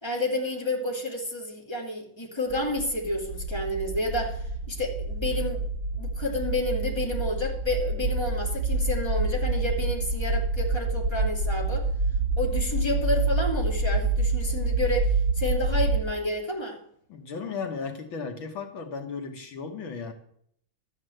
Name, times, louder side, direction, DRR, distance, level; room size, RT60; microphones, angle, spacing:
voice 1, 0.0-5.6 5.9-11.8 12.4-16.8, left 1 dB, 10° left, -1 dB, 2.5 m, -30 dB
sound 1, 2.5-16.0, right 3 dB, 15° right, 1.7 m, -27 dB
voice 2, 17.1-20.1, left 5 dB, 70° left, 5 dB, 2.0 m, -35 dB
13.0 x 8.6 x 7.8 m, 0.66 s
omnidirectional pair, 2.3 m